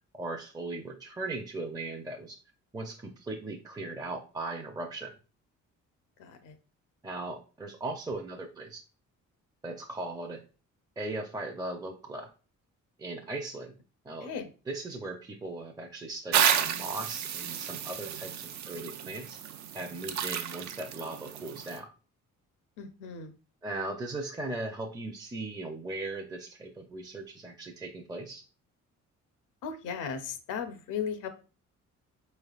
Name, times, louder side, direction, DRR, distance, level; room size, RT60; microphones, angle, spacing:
voice 1, 0.1-2.4 2.7-5.1 7.0-8.8 9.6-10.4 11.0-12.3 13.0-13.7 14.0-14.3 14.7-19.4 19.7-21.9 23.6-28.4, right 2 dB, 15° right, 2 dB, 0.5 m, -38 dB
voice 2, 6.2-6.6 14.2-14.5 22.8-23.3 29.6-31.3, left 6 dB, 85° left, 8 dB, 0.6 m, -36 dB
sound 1, 16.3-21.8, right 9 dB, 65° right, 0.5 m, -31 dB
4.7 x 3.2 x 2.4 m, 0.34 s
cardioid pair, 90°, 30 cm